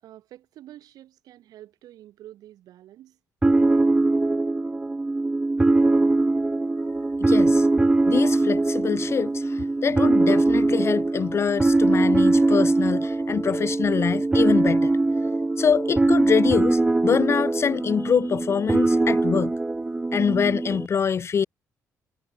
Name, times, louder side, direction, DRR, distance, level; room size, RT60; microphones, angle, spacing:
voice 1, 0.0-3.2, right 13 dB, 80° right, 3.3 m, -47 dB
sound 1, 3.4-20.9, right 2 dB, 15° right, 0.6 m, -22 dB
voice 2, 7.2-7.7 8.1-15.0 15.6-19.5 20.1-21.5, left 7 dB, 45° left, 0.5 m, -24 dB
cardioid pair, 80°, 6 cm